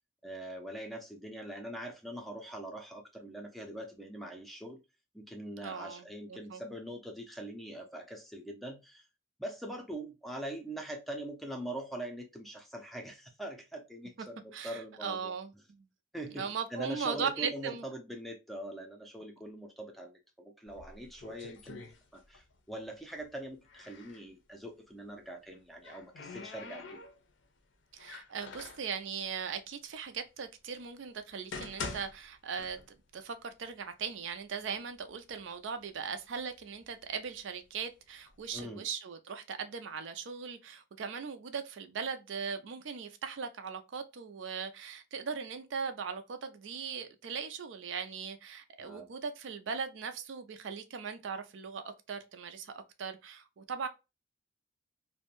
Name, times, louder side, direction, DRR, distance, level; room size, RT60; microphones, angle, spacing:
voice 1, 0.2-4.8 5.1-9.1 9.4-15.3 16.1-21.8 22.1-27.0 38.5-38.9 48.8-49.0, right 1 dB, ahead, 0.4 m, -43 dB
voice 2, 5.6-6.6 14.5-15.5 16.4-17.8 27.9-32.8 33.1-53.9, right 6 dB, 70° right, 0.4 m, -39 dB
sound 1, 20.7-22.6 22.8-24.3 25.4-27.4 28.0-28.9 29.7-29.8 30.4-30.5 31.2-33.2 33.5-33.6 34.3-34.4 34.8-35.4 36.0-37.6 38.3-38.6, left 4 dB, 65° left, 0.5 m, -46 dB
2.6 x 2.1 x 2.9 m
head